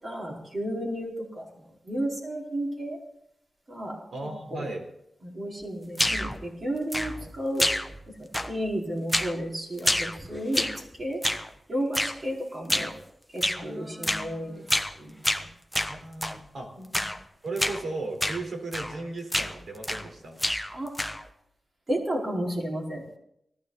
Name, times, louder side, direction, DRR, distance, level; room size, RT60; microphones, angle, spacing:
voice 1, 0.0-3.0 3.7-4.0 4.5-4.7 5.2-7.7 8.1-11.2 11.7-12.9 13.3-14.7 15.0-15.5 16.8-17.0 20.7-20.9 21.9-23.0, equal, 35° right, -2 dB, 4.8 m, -32 dB
voice 2, 4.1-4.8 13.6-14.8 15.9-16.7 17.4-20.4, right 2 dB, 75° right, 2 dB, 4.2 m, -36 dB
sound 1, 5.9-6.4 6.9-7.3 7.6-8.1 8.3-8.7 9.1-9.4 9.8-10.8 11.2-11.5 11.9-12.2 12.7-13.0 13.4-13.6 14.0-14.3 14.7-15.0 15.2-16.4 16.9-17.2 17.6-17.8 18.2-18.4 18.7-19.0 19.3-20.1 20.4-21.3, equal, ahead, 1.0 m, -28 dB
19.5 x 15.0 x 4.2 m, 0.76 s
wide cardioid pair, 95°, 0 cm